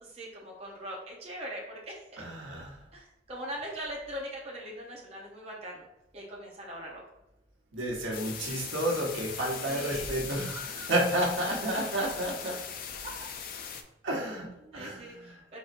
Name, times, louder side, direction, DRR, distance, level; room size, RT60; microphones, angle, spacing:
voice 1, 0.0-2.2 2.9-5.8 6.1-7.0 9.7-10.1 14.6-15.6, equal, 30° right, -3 dB, 0.7 m, -41 dB
voice 2, 2.2-2.8 7.7-12.6 14.0-15.4, right 1 dB, 90° right, -2 dB, 1.2 m, -31 dB
sound 1, 8.1-13.8, left 7 dB, 50° left, 0.4 m, -40 dB
4.1 x 4.1 x 2.5 m, 0.87 s
head